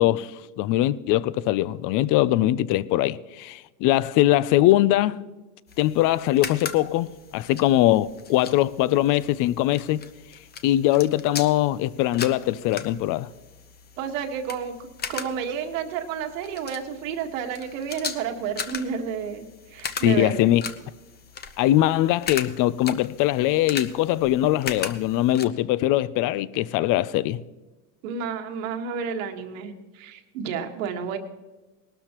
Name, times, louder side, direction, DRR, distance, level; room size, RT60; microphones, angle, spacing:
voice 1, 0.0-5.2 5.8-10.0 10.6-13.3 20.0-20.6 21.6-27.4, left 14 dB, 55° left, 0.6 m, -22 dB
sound 1, 5.7-25.4, left 6 dB, 25° left, 0.8 m, -39 dB
voice 2, 14.0-20.5 28.0-31.2, right 7 dB, 85° right, 1.7 m, -31 dB
20.0 x 12.5 x 3.0 m
supercardioid pair, 130°, 39 cm